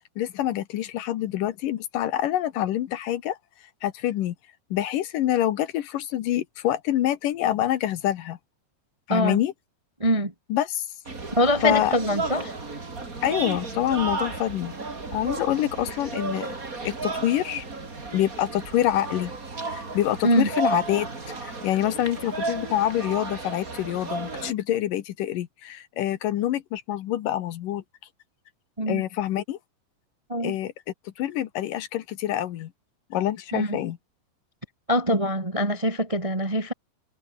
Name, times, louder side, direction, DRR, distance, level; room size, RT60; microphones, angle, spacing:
voice 1, 0.2-3.4 3.8-4.3 4.7-8.4 9.1-9.5 10.5-10.9 11.6-12.0 13.2-14.7 15.1-16.6 16.8-17.6 18.1-19.3 19.7-21.1 21.4-27.8 28.9-29.6 30.4-30.7 31.2-32.7 33.1-34.0, left 12 dB, 70° left, 2.1 m, -26 dB
voice 2, 10.0-10.3 11.4-12.5 20.2-20.5 28.8-29.0 30.3-30.5 33.5-33.8 34.9-36.7, equal, 55° right, 0.3 m, -23 dB
sound 1, 11.0-24.5, right 3 dB, 20° right, 3.2 m, -33 dB
omnidirectional pair, 5.2 m